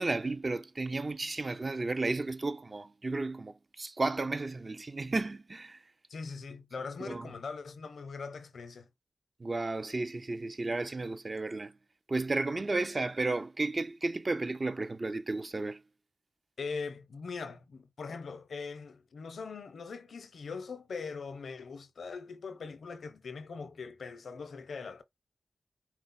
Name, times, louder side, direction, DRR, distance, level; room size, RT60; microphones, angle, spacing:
voice 1, 0.0-5.8 7.0-7.3 9.4-11.7 12.1-15.8, right 3 dB, 45° right, 0.5 m, -33 dB
voice 2, 6.1-8.9 16.6-25.0, left 5 dB, 85° left, 0.6 m, -41 dB
4.5 x 2.0 x 4.0 m
cardioid pair, 45°, 0 cm